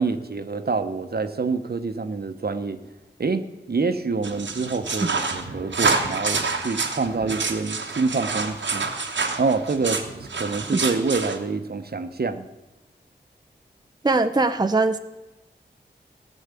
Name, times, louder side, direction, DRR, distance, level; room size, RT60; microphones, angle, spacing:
voice 1, 0.0-2.8 3.2-8.9 9.4-12.5, right 4 dB, 60° right, 9 dB, 1.0 m, -26 dB
sound 1, 4.2-11.4, right 4 dB, 85° right, 1.2 m, -27 dB
voice 2, 14.0-15.0, right 3 dB, 20° right, 8 dB, 0.7 m, -21 dB
15.0 x 6.4 x 8.3 m, 1.1 s
cardioid pair, 40°, 19 cm